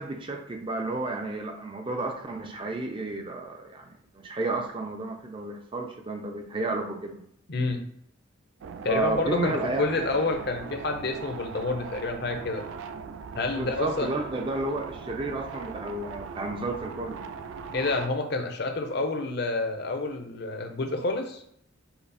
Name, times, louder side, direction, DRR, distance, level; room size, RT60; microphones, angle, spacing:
voice 1, 0.0-7.2 8.9-9.9 13.5-17.2, right 2 dB, 25° right, 3 dB, 0.5 m, -32 dB
voice 2, 7.5-7.8 8.8-12.6 13.3-14.1 17.7-21.4, left 3 dB, 55° left, 4 dB, 0.7 m, -28 dB
sound 1, 8.6-18.1, right 5 dB, 85° right, 0.3 m, -40 dB
5.7 x 2.0 x 4.1 m, 0.71 s
head